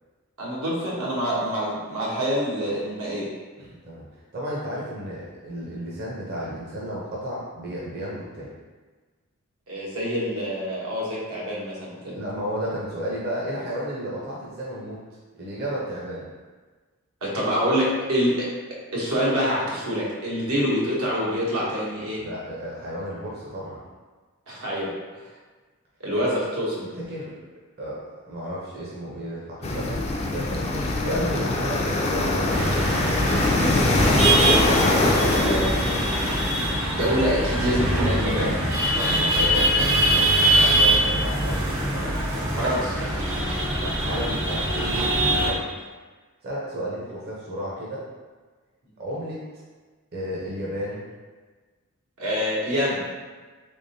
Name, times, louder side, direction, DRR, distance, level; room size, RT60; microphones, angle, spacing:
voice 1, 0.4-3.3 9.7-12.1 17.2-18.5 18.9-22.2 24.5-24.9 26.0-26.9 34.4-35.9 36.9-38.5 42.6-43.0 52.2-53.0, equal, 80° right, -6 dB, 1.1 m, -26 dB
voice 2, 3.6-4.1 4.3-8.5 12.1-15.0 15.4-16.2 22.1-23.8 27.1-27.3 27.8-33.2 37.6-41.6 41.9-42.6 43.8-45.6 46.4-48.1 49.0-49.4 50.1-51.0, equal, 50° right, -6 dB, 0.7 m, -33 dB
sound 1, 29.6-36.7, left 2 dB, 30° left, 0.3 m, -23 dB
sound 2, 32.5-45.5, right 1 dB, 65° right, 1.0 m, -23 dB
3.5 x 3.4 x 2.7 m, 1.4 s
head